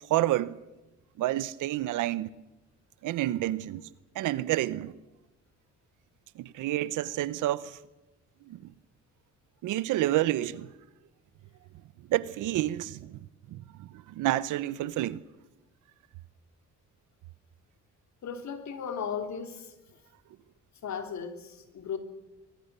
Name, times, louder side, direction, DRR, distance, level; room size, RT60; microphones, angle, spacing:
voice 1, 0.1-0.6 1.2-2.3 3.0-3.9 4.1-4.9 6.4-7.8 8.5-8.7 9.6-10.7 12.1-13.2 13.5-15.2, right 15 dB, 90° right, 0.9 m, -29 dB
voice 2, 18.2-19.7 20.8-22.0, left 7 dB, 65° left, 3.3 m, -36 dB
23.0 x 21.5 x 6.9 m
cardioid pair, 90°, 30 cm